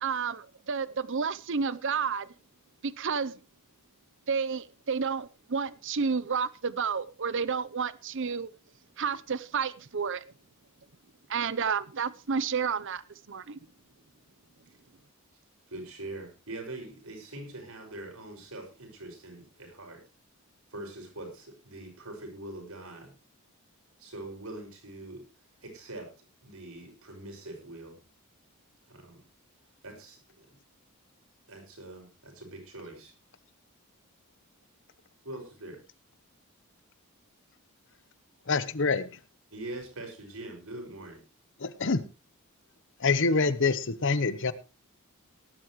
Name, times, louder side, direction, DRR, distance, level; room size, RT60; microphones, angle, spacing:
voice 1, 0.0-2.3 2.8-3.3 4.3-8.5 9.0-10.2 11.3-13.0 13.3-13.6, right 5 dB, 55° right, 0.7 m, -30 dB
voice 2, 15.7-20.0 20.7-23.1 24.0-25.2 25.6-26.1 26.4-28.0 28.9-29.2 29.8-30.5 31.5-33.1 35.2-35.8 39.5-41.2, right 2 dB, 75° right, 6.0 m, -43 dB
voice 3, 38.5-39.1 41.6-42.0 43.0-44.5, left 4 dB, 60° left, 1.0 m, -26 dB
18.5 x 11.5 x 3.1 m
head